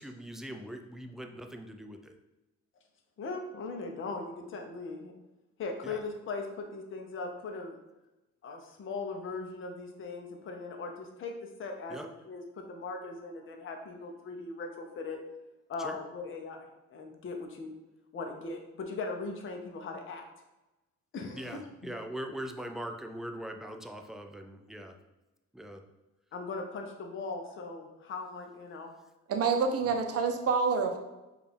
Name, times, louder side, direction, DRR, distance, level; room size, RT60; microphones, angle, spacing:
voice 1, 0.0-2.1 5.8-6.0 11.9-12.1 15.8-16.0 21.3-25.0 25.5-25.8, right 1 dB, ahead, 4 dB, 0.3 m, -41 dB
voice 2, 3.2-5.1 5.6-7.8 8.4-15.2 15.7-17.7 18.1-20.2 21.1-21.6 26.3-28.9, left 3 dB, 40° left, 3 dB, 0.6 m, -39 dB
voice 3, 29.3-31.0, right 5 dB, 50° right, 5 dB, 0.6 m, -27 dB
4.7 x 2.5 x 3.3 m, 1.0 s
cardioid pair, 90°, 30 cm